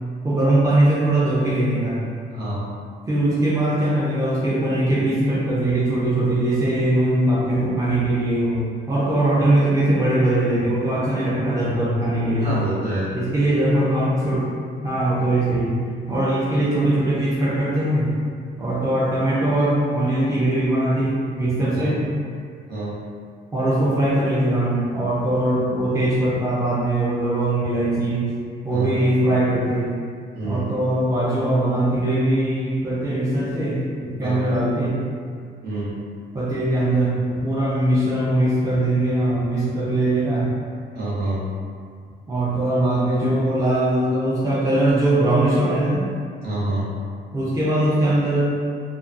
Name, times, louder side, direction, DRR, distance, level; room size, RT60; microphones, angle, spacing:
voice 1, 0.2-2.0 3.1-12.6 13.1-14.5 14.8-15.8 16.1-18.1 18.6-22.0 23.5-28.4 28.6-30.0 30.4-35.0 36.3-40.5 42.3-46.0 47.3-48.5, right 1 dB, 15° right, -8 dB, 0.6 m, -21 dB
voice 2, 2.3-2.6 12.4-13.1 21.7-21.9 22.7-23.0 28.7-29.1 30.3-30.7 34.2-34.6 35.6-35.9 40.9-41.4 46.4-46.8, right 1 dB, 55° right, -9 dB, 0.9 m, -27 dB
2.3 x 2.2 x 2.5 m, 2.1 s
cardioid pair, 90°, 20 cm